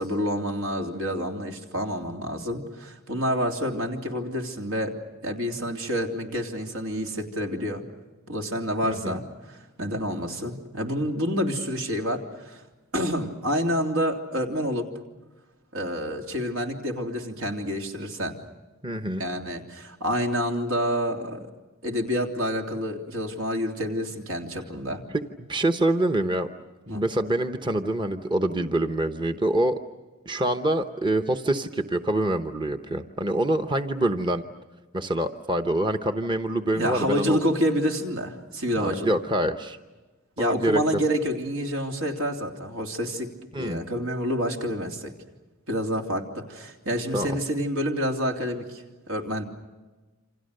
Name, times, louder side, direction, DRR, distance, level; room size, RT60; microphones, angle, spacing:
voice 1, 0.0-4.9 5.2-7.8 8.3-12.6 12.9-14.9 15.7-18.4 19.2-21.5 21.8-25.0 26.9-27.0 36.7-39.1 40.4-43.3 43.6-45.1 45.7-49.4, equal, 80° right, 2 dB, 3.3 m, -28 dB
voice 2, 8.8-9.2 18.8-19.2 25.1-26.5 26.9-29.8 30.3-34.4 34.9-37.4 38.8-39.8 40.4-41.0 43.5-43.8 47.1-47.4, right 1 dB, 20° right, 7 dB, 0.9 m, -26 dB
28.5 x 26.5 x 6.6 m, 1.2 s
head